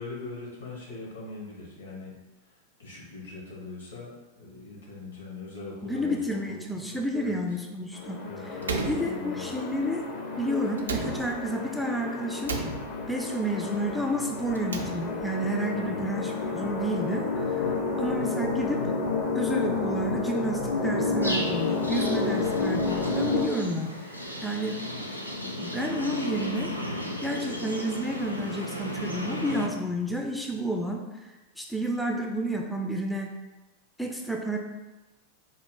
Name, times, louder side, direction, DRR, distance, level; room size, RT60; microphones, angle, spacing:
voice 1, 0.0-6.6 6.8-7.6 8.2-9.6 15.7-16.0, left 3 dB, 70° left, -4 dB, 1.3 m, -41 dB
voice 2, 5.8-8.2 8.9-10.1 10.4-12.6 13.1-17.6 18.0-18.9 19.3-24.8 25.6-26.7 27.2-33.3 34.0-34.6, right 1 dB, ahead, 1 dB, 0.3 m, -30 dB
sound 1, 7.9-23.5, left 3 dB, 50° left, 0.6 m, -30 dB
Slam, 8.6-9.8 10.8-11.7 12.4-13.3 14.5-15.4, right 4 dB, 70° right, 0.4 m, -34 dB
sound 2, 21.2-29.7, equal, 90° left, 0.4 m, -35 dB
3.9 x 2.3 x 3.6 m, 1.1 s
figure-of-eight pair, 90°, 0 cm